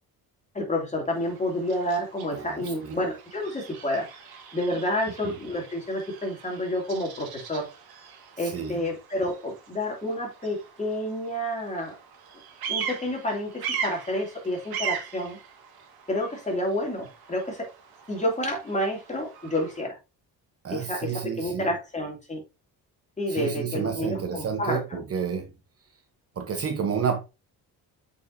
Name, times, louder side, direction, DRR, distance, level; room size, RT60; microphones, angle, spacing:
voice 1, 0.5-4.2 4.5-7.7 8.4-12.0 12.7-15.4 16.1-17.7 18.1-20.0 20.7-22.4 23.2-25.0, left 1 dB, 20° left, 2.7 m, -29 dB
Bird vocalization bird call bird song, 1.1-19.8, right 7 dB, 75° right, 1.8 m, -40 dB
voice 2, 2.3-3.0 5.2-5.3 8.4-8.8 20.6-21.7 23.3-25.5 26.4-27.2, right 6 dB, 40° right, 0.9 m, -30 dB
7.6 x 5.3 x 2.7 m
cardioid pair, 120°, 38 cm